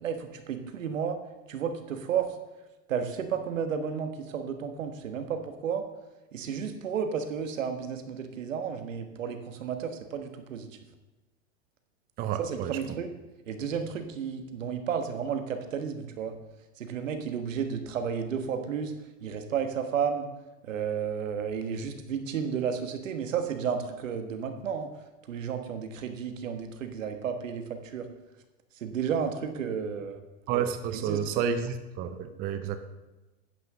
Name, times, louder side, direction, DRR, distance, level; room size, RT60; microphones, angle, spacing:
voice 1, 0.0-1.2 1.5-2.3 2.9-5.8 6.3-10.7 12.4-13.1 13.5-16.3 16.8-18.9 19.2-20.2 20.7-24.9 25.3-27.6 27.9-28.0 28.8-30.2 30.9-31.4, right 7 dB, 80° right, 7 dB, 1.5 m, -32 dB
voice 2, 12.2-12.8 30.5-32.8, right 8 dB, 25° right, 9 dB, 0.6 m, -30 dB
9.5 x 5.8 x 6.7 m, 1.1 s
hypercardioid pair, 130°, 38 cm